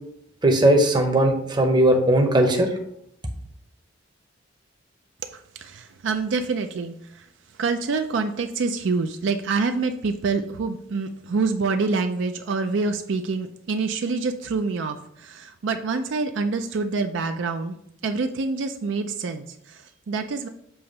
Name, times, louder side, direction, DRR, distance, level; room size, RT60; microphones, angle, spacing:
voice 1, 0.4-2.7, right 1 dB, 20° right, 3 dB, 0.7 m, -18 dB
voice 2, 5.3-7.3 7.6-17.8 18.0-20.5, right 4 dB, 65° right, 7 dB, 0.4 m, -26 dB
7.0 x 2.8 x 5.3 m, 0.73 s
head